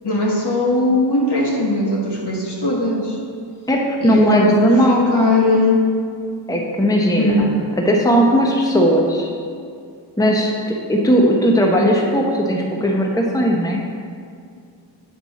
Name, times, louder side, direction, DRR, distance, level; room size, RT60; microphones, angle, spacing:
voice 1, 0.0-3.2 4.0-5.9 7.2-7.5, left 2 dB, 60° left, -1 dB, 1.4 m, -19 dB
voice 2, 3.7-5.1 6.5-7.5 7.8-9.3 10.2-13.8, equal, 10° left, 0 dB, 0.8 m, -17 dB
7.8 x 5.2 x 4.2 m, 2.3 s
wide cardioid pair, 55°, 46 cm